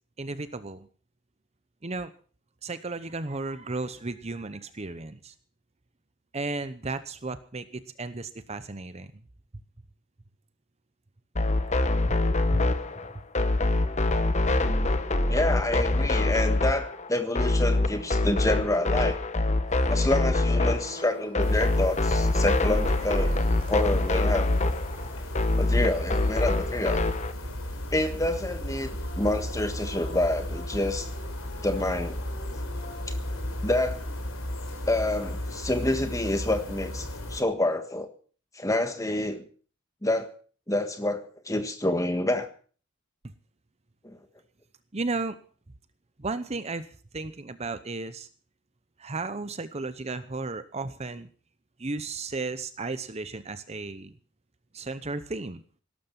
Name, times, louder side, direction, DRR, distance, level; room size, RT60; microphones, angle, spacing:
voice 1, 0.2-0.9 1.8-2.1 2.6-5.3 6.3-9.1 12.1-12.2 12.5-12.7 23.2-23.3 43.2-43.3 44.9-45.4 46.2-46.9 47.1-48.3 49.0-51.3 51.8-54.1 54.7-55.6, right 3 dB, 30° right, 12 dB, 0.8 m, -34 dB
sound 1, 11.3-27.3, left 2 dB, 35° left, 1.0 m, -25 dB
voice 2, 15.3-19.2 19.9-23.3 23.7-24.7 25.6-27.0 27.9-28.9 29.2-31.1 31.6-32.2 33.1-33.2 33.6-34.0 34.9-38.1 38.5-39.4 40.0-40.3 40.7-42.5 44.0-44.2, left 1 dB, 15° left, 8 dB, 1.5 m, -28 dB
sound 2, 19.7-25.2 28.7-35.1, right 1 dB, 50° left, 6.9 m, -49 dB
sound 3, 21.4-37.4, left 1 dB, 80° left, 4.2 m, -35 dB
18.0 x 12.5 x 5.9 m, 0.43 s
head